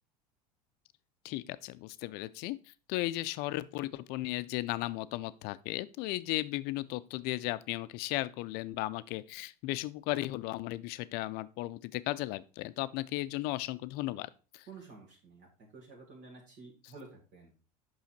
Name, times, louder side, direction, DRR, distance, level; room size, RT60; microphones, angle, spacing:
voice 1, 1.2-2.6 2.9-14.7, left 18 dB, 55° left, 0.5 m, -35 dB
voice 2, 14.7-15.5 15.7-17.5, right 4 dB, 60° right, 2.3 m, -51 dB
5.7 x 5.6 x 4.3 m
hypercardioid pair, 80°, 20 cm